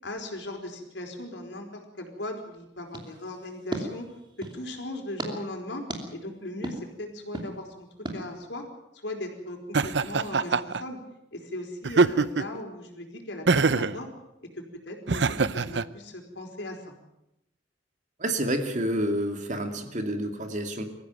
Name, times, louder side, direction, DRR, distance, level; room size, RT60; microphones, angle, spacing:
voice 1, 0.0-7.9 8.1-8.6 9.0-11.0 11.3-14.1 14.5-16.9, left 1 dB, 75° left, 3 dB, 4.8 m, -38 dB
sound 1, 2.9-4.6 5.2-5.3 5.9-6.0 6.6-6.8 7.3-7.5 8.0-8.2, right 1 dB, 25° right, 3.0 m, -36 dB
Laughter, 9.7-10.8 11.8-12.6 13.5-14.0 15.1-15.9, right 4 dB, 70° right, 0.7 m, -23 dB
voice 2, 18.2-20.8, right 1 dB, 45° right, 6 dB, 2.5 m, -29 dB
23.5 x 15.0 x 9.3 m, 0.85 s
head